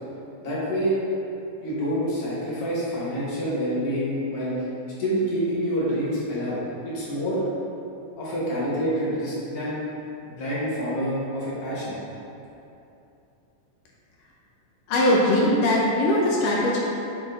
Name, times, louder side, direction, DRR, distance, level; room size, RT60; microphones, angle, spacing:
voice 1, 0.4-1.0 1.6-4.6 5.0-6.6 6.9-7.4 8.2-9.8 10.2-12.0, equal, 60° left, -9 dB, 1.9 m, -27 dB
voice 2, 14.9-16.8, left 1 dB, 80° left, -4 dB, 2.2 m, -20 dB
6.7 x 5.9 x 2.6 m, 2.8 s
omnidirectional pair, 3.8 m